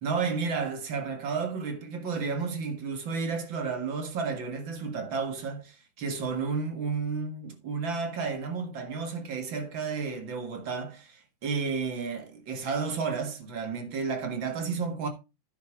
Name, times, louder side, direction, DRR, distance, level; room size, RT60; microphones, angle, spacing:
voice 1, 0.0-15.1, right 5 dB, 85° right, 2.5 m, -32 dB
9.8 x 6.3 x 4.8 m
omnidirectional pair, 2.0 m